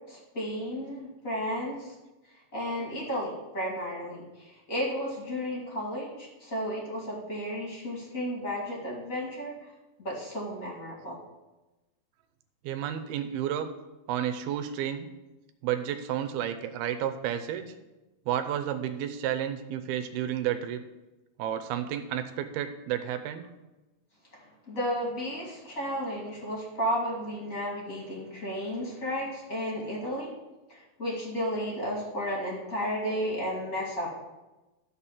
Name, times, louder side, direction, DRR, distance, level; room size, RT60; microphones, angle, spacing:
voice 1, 0.1-1.9 2.5-9.5 10.0-11.2 24.3-30.3 30.7-34.1, equal, 25° left, -3 dB, 1.9 m, -33 dB
voice 2, 12.6-13.7 14.1-15.1 15.6-17.7 18.3-20.8 21.4-23.4, right 10 dB, 80° right, 9 dB, 2.5 m, -31 dB
12.5 x 4.3 x 7.3 m, 1.1 s
omnidirectional pair, 4.6 m